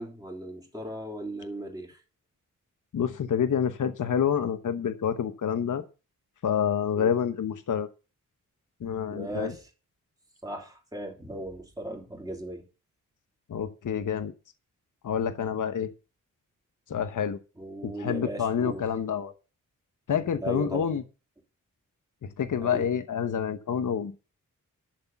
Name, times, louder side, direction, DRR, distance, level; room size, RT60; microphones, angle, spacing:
voice 1, 0.0-2.0 6.9-7.1 9.1-9.7 10.4-12.7 17.6-18.8 20.4-20.9 22.6-22.9, right 1 dB, 10° right, 3.3 m, -37 dB
voice 2, 2.9-5.8 6.4-7.9 8.8-9.5 13.5-14.3 15.0-15.9 16.9-17.4 17.8-19.3 20.1-21.0 22.2-24.1, left 8 dB, 70° left, 1.1 m, -28 dB
12.0 x 6.7 x 7.1 m
wide cardioid pair, 155°, 32 cm